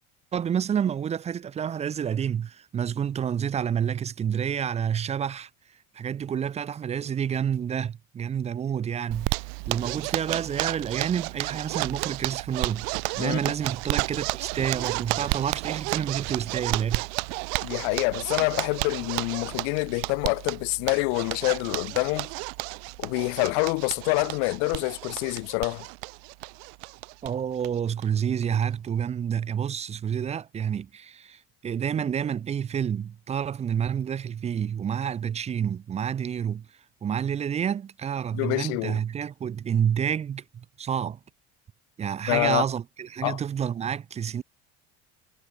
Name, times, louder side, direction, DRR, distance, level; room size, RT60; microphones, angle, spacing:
voice 1, 0.3-5.5 5.9-9.3 9.7-12.9 13.2-17.0 27.2-36.7 37.0-41.2 42.0-44.4, right 8 dB, 20° right, 0.5 m, -29 dB
Zipper (clothing), 9.1-27.3 27.6-27.7 28.0-28.1 28.4-28.9, right 40 dB or more, 90° right, 1.2 m, -32 dB
voice 2, 17.6-22.3 23.0-25.9 38.3-39.0 42.3-42.6 43.2-43.4, left 40 dB or more, 85° left, 2.2 m, -26 dB
cardioid pair, 145°, 30 cm